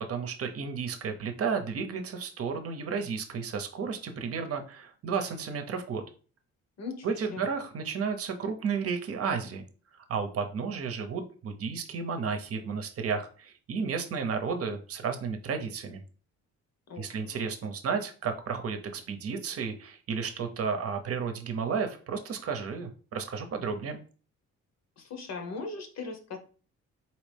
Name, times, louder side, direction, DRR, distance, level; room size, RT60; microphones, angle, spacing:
voice 1, 0.1-6.0 7.0-9.6 10.1-16.0 17.0-24.0, right 5 dB, 50° right, 7 dB, 0.8 m, -32 dB
voice 2, 6.8-7.4 16.9-17.4 25.0-26.4, left 4 dB, 60° left, 5 dB, 1.0 m, -39 dB
4.2 x 2.9 x 3.4 m, 0.39 s
cardioid pair, 90°, 30 cm